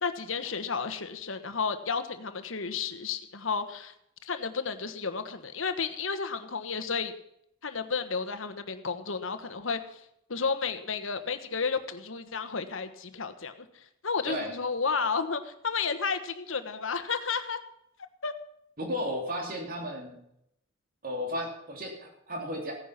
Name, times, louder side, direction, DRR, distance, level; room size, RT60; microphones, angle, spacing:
voice 1, 0.0-3.9 4.2-7.1 7.6-10.0 10.3-13.6 14.0-17.6 18.2-18.3, left 5 dB, 90° left, 10 dB, 1.3 m, -32 dB
voice 2, 18.8-20.2 21.0-22.7, equal, 45° right, 1 dB, 3.0 m, -34 dB
16.0 x 10.0 x 5.9 m, 0.76 s
head